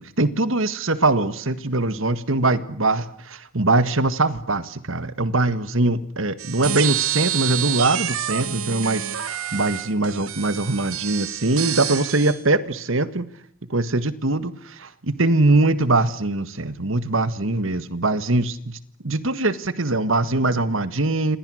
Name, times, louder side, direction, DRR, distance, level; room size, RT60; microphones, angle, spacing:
voice 1, 0.0-13.3 13.7-18.8 19.0-21.4, right 2 dB, 70° right, 14 dB, 1.8 m, -22 dB
sound 1, 6.4-12.4, right 11 dB, 85° right, 2.3 m, -28 dB
29.5 x 25.0 x 6.5 m, 0.62 s
head